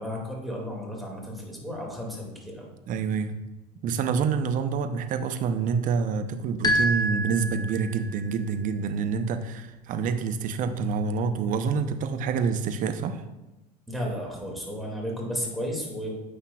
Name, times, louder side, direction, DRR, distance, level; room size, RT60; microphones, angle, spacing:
voice 1, 0.0-2.7 13.9-16.1, equal, ahead, -2 dB, 2.2 m, -33 dB
voice 2, 2.9-3.4 3.8-13.2, right 5 dB, 40° right, 9 dB, 0.7 m, -27 dB
sound 1, 6.6-8.2, right 1 dB, 20° left, 1.0 m, -27 dB
9.4 x 5.6 x 2.3 m, 1.1 s
hypercardioid pair, 80°, 21 cm